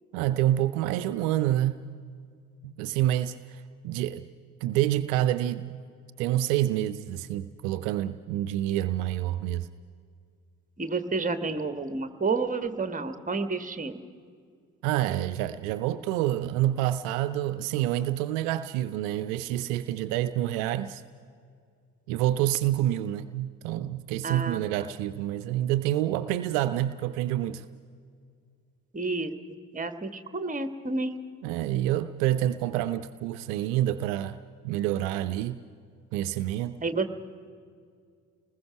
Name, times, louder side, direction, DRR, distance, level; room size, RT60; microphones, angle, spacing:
voice 1, 0.1-1.8 2.6-4.3 4.6-5.8 6.2-9.7 14.8-21.0 22.1-27.7 31.4-34.4 34.6-35.6 36.1-36.8, right 13 dB, 65° right, 12 dB, 0.6 m, -27 dB
voice 2, 10.8-14.0 24.2-24.9 28.9-29.3 29.7-31.2 36.8-37.1, right 3 dB, 20° right, 10 dB, 1.5 m, -30 dB
29.5 x 20.0 x 5.8 m, 2.2 s
figure-of-eight pair, 45°, 44 cm